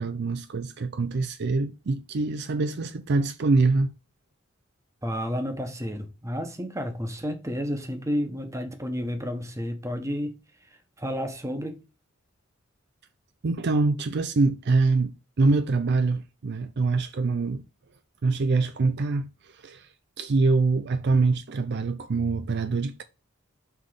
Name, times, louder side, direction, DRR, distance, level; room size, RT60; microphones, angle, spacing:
voice 1, 0.0-3.9 13.4-15.1 15.4-17.6 18.2-19.3 19.6-19.9 20.2-23.0, right 3 dB, 55° right, 0.5 m, -24 dB
voice 2, 5.0-10.4 11.0-11.8, equal, 15° right, 1.1 m, -31 dB
5.9 x 3.7 x 4.9 m
head